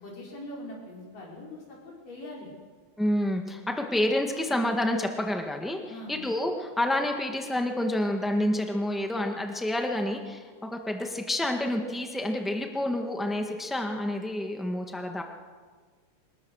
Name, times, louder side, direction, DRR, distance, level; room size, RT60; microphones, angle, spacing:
voice 1, 0.0-2.5 5.9-6.2, left 1 dB, 80° left, -3 dB, 7.2 m, -42 dB
voice 2, 3.0-5.8 6.1-15.2, left 1 dB, ahead, 3 dB, 0.4 m, -28 dB
26.0 x 20.0 x 6.5 m, 1.5 s
omnidirectional pair, 3.7 m